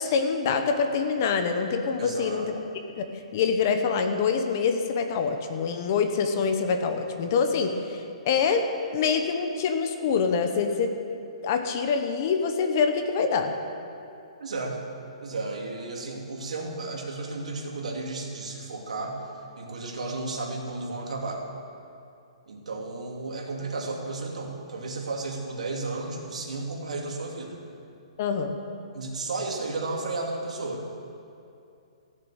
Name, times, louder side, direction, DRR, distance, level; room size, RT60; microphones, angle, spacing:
voice 1, 0.0-2.5 3.0-3.1 3.3-8.7 8.9-11.0 11.4-13.5 28.2-28.6, left 5 dB, 25° left, 6 dB, 0.8 m, -25 dB
voice 2, 2.0-2.5 14.4-14.8 15.2-19.2 19.6-21.4 22.5-27.6 28.9-30.8, right 3 dB, 85° right, 0 dB, 2.6 m, -33 dB
15.0 x 7.2 x 7.8 m, 2.6 s
hypercardioid pair, 180°, 4 cm